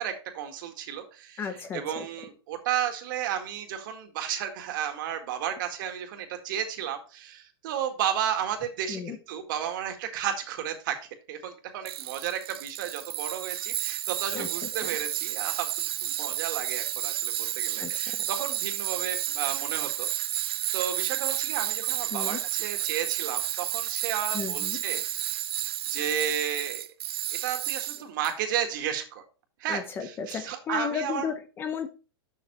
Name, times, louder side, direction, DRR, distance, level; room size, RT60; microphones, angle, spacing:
voice 1, 0.0-1.4 1.7-11.0 11.3-15.7 16.0-25.3 25.9-26.9 27.4-29.2 29.6-31.3, right 9 dB, 55° right, 1.9 m, -33 dB
voice 2, 1.4-2.1 8.9-9.2 14.3-14.5 14.8-14.9 17.8-18.3 22.1-22.4 24.3-24.8 29.7-31.9, left 7 dB, 15° left, 0.6 m, -34 dB
Tools, 11.9-28.3, right 13 dB, 75° right, 0.4 m, -31 dB
7.0 x 6.3 x 4.2 m
supercardioid pair, 155°, 13 cm